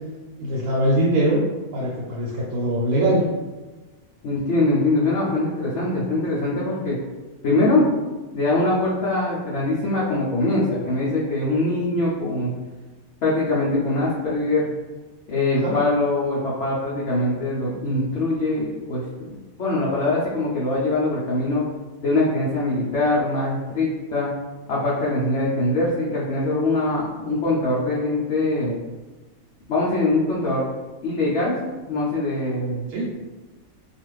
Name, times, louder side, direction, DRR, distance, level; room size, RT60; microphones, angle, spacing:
voice 1, 0.4-1.4 1.7-3.2 15.5-15.8 32.9-33.1, right 1 dB, 85° right, -5 dB, 1.1 m, -22 dB
voice 2, 4.2-7.0 7.4-7.9 8.3-12.5 13.2-14.7 15.3-19.3 19.6-21.6 22.0-24.3 24.7-28.8 29.7-30.7 31.0-33.1, left 2 dB, 65° left, -7 dB, 0.8 m, -23 dB
2.4 x 2.4 x 3.1 m, 1.2 s
omnidirectional pair, 1.5 m